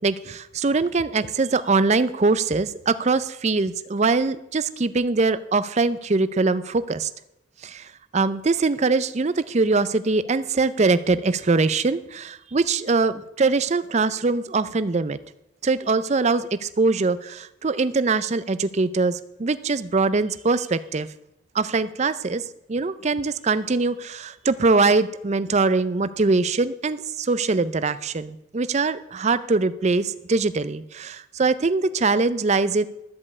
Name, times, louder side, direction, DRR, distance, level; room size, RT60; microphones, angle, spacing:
voice 1, 0.0-7.1 7.6-7.9 8.1-15.2 15.6-21.1 21.5-22.4 22.7-32.8, right 3 dB, 35° right, 14 dB, 0.5 m, -22 dB
13.0 x 5.4 x 8.3 m, 0.85 s
head